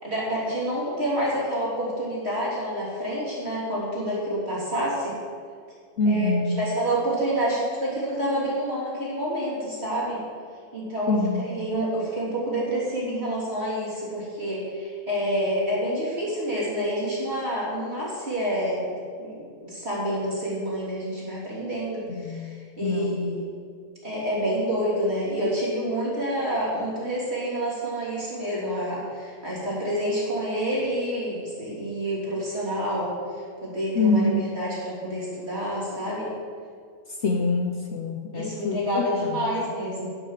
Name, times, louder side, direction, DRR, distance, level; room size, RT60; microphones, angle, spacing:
voice 1, 0.0-5.1 6.1-10.2 10.7-23.5 24.0-33.2 33.6-36.3 38.3-40.1, equal, 45° right, -7 dB, 3.6 m, -28 dB
voice 2, 6.0-6.6 11.1-11.7 22.1-22.5 22.8-23.3 33.9-34.5 37.2-39.6 39.9-40.1, left 2 dB, 55° left, 3 dB, 0.9 m, -25 dB
10.5 x 6.2 x 7.5 m, 2.1 s
omnidirectional pair, 1.6 m